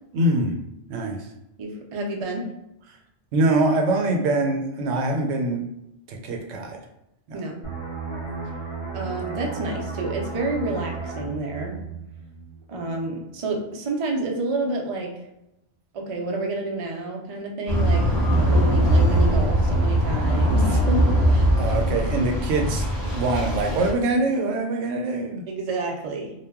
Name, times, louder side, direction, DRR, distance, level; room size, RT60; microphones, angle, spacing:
voice 1, 0.1-0.6 0.9-1.2 3.3-5.6 6.1-6.8 7.3-7.4 21.6-25.4, right 2 dB, 90° right, 3 dB, 0.9 m, -24 dB
voice 2, 1.6-2.5 7.3-7.6 8.9-11.8 12.7-15.1 15.9-21.8 25.5-26.3, right 2 dB, 55° right, 0 dB, 0.3 m, -29 dB
sound 1, 7.6-13.0 13.3-13.6, right 4 dB, 35° left, 0.6 m, -34 dB
sound 2, 17.7-23.9, right 1 dB, ahead, 0.8 m, -21 dB
2.2 x 2.0 x 3.4 m, 0.85 s
omnidirectional pair, 1.2 m